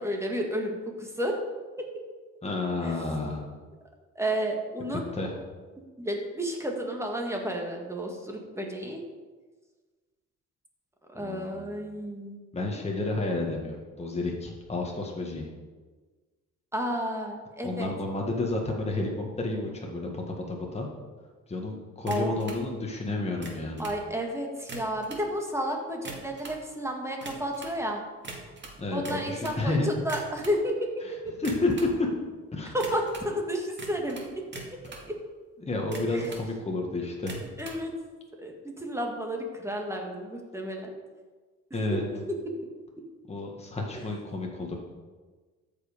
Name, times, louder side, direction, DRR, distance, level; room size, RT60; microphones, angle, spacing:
voice 1, 0.0-1.4 1.8-1.9 2.8-3.0 4.2-5.1 5.8-9.0 11.1-12.4 16.7-17.9 22.1-22.4 23.8-28.0 28.9-31.3 32.7-34.8 35.1-35.2 36.1-36.3 37.6-37.9 38.4-40.9 41.9-42.0 42.3-42.4 44.0-44.1, equal, 10° right, 1 dB, 1.9 m, -32 dB
voice 2, 2.4-3.5 4.9-5.3 11.2-11.8 12.5-15.5 17.6-19.1 19.4-20.9 21.5-23.8 28.8-29.9 31.0-32.1 32.5-32.8 35.6-37.5 41.7-42.0 43.3-44.8, left 2 dB, 20° left, -1 dB, 1.7 m, -31 dB
sound 1, 22.1-22.6 23.3-24.0 24.6-25.3 25.9-26.6 27.2-27.8 28.2-29.6 30.0-30.6 31.3-32.0 32.8-33.3 33.8-35.1 35.8-36.5 37.2-37.8, right 3 dB, 35° right, 2.2 m, -42 dB
13.5 x 5.4 x 5.2 m, 1.4 s
cardioid pair, 90°, 30 cm